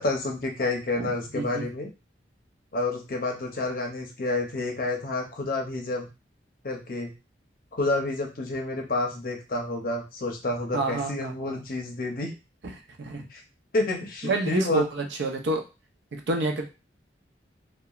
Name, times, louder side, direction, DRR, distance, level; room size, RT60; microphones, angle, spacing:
voice 1, 0.0-1.9 2.7-6.1 6.6-7.1 7.7-12.3 13.3-13.4 13.7-14.8, left 2 dB, 50° left, 2 dB, 0.6 m, -29 dB
voice 2, 10.7-11.6 13.0-13.3 14.2-15.6 16.1-16.6, right 2 dB, 75° right, 3 dB, 0.5 m, -28 dB
2.8 x 2.2 x 2.3 m, 0.29 s
head